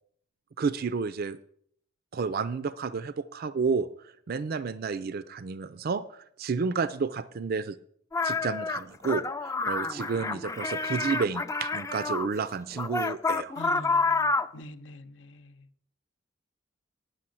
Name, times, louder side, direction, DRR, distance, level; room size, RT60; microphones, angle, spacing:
voice 1, 0.6-1.4 2.1-7.8 8.2-13.6, right 5 dB, 50° right, 0.4 m, -31 dB
goblin cheer, 8.1-12.3 12.7-14.6, left 3 dB, 15° left, 0.4 m, -29 dB
voice 2, 13.6-15.5, left 2 dB, 70° left, 0.8 m, -45 dB
9.8 x 6.3 x 7.6 m
head